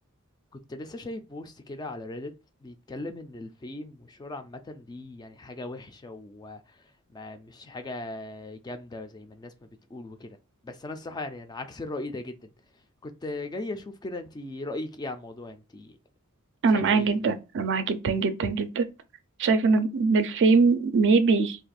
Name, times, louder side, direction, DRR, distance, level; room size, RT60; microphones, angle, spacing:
voice 1, 0.7-2.3 2.6-6.6 7.1-9.5 9.9-10.4 10.6-12.5 13.0-16.0 16.7-17.3, left 2 dB, 20° left, 0.3 m, -38 dB
voice 2, 16.6-18.9 19.4-21.6, right 4 dB, 55° right, 0.4 m, -22 dB
2.5 x 2.3 x 4.0 m
head